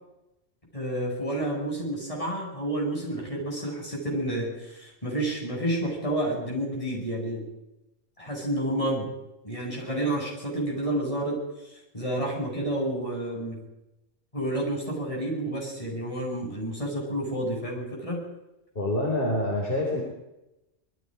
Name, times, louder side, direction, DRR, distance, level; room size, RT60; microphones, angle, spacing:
voice 1, 0.7-7.5 8.2-9.1 9.4-11.4 11.9-13.6 14.3-18.2, right 1 dB, 25° left, -2 dB, 7.4 m, -30 dB
voice 2, 18.7-20.0, left 1 dB, 45° left, -3 dB, 4.6 m, -26 dB
26.0 x 21.0 x 5.1 m, 0.94 s
omnidirectional pair, 1.3 m